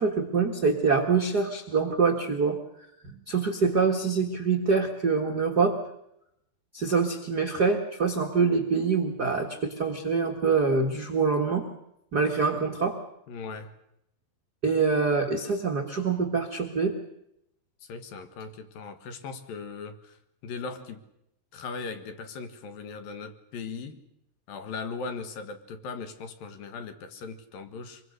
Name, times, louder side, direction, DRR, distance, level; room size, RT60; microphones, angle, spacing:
voice 1, 0.0-2.6 3.0-5.8 6.7-11.6 12.1-13.0 14.6-16.9, right 4 dB, 65° right, 3 dB, 0.9 m, -25 dB
voice 2, 13.3-13.7 17.9-20.2 20.4-21.0 21.5-24.0 24.5-28.0, left 4 dB, 65° left, 8 dB, 3.1 m, -38 dB
25.5 x 23.5 x 6.6 m, 0.80 s
omnidirectional pair, 4.7 m